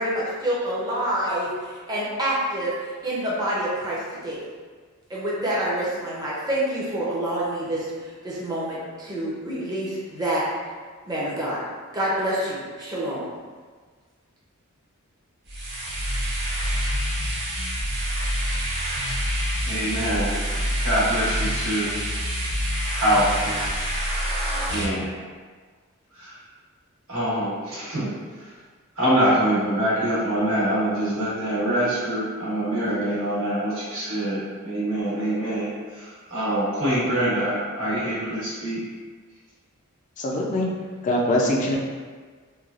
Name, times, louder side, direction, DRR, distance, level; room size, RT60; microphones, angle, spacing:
voice 1, 0.0-2.8 3.0-4.4 5.1-10.4 11.1-11.6 11.9-13.3, right 1 dB, 20° right, -7 dB, 0.5 m, -27 dB
sound 1, 15.5-24.8, equal, 55° right, 0.7 m, -27 dB
voice 2, 19.6-21.9 22.9-23.6 24.0-24.3 24.7-25.1 26.1-26.4 27.1-28.1 28.4-28.5 29.0-38.8, right 1 dB, 75° right, -9 dB, 1.1 m, -25 dB
voice 3, 40.2-40.7 41.0-41.8, left 1 dB, 35° left, -2 dB, 0.3 m, -22 dB
3.1 x 2.2 x 2.4 m, 1.5 s
head